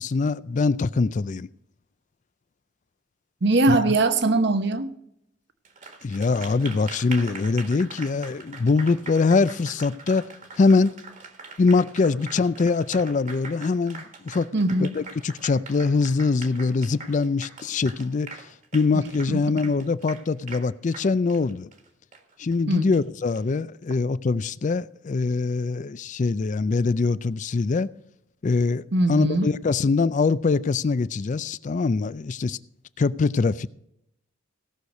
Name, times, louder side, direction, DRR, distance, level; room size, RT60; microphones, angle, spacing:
voice 1, 0.0-1.5 3.7-3.9 6.0-10.3 10.6-10.9 11.6-14.5 14.8-21.7 22.4-27.9 28.4-28.8 29.1-32.6 33.0-33.7, left 4 dB, 40° left, 0.4 m, -23 dB
voice 2, 3.4-4.9 14.5-14.9 19.3-19.4 22.7-22.9 28.9-29.5, right 2 dB, 60° right, 0.9 m, -21 dB
Applause, 5.6-23.4, right 4 dB, 40° right, 1.6 m, -42 dB
17.5 x 6.5 x 5.3 m
head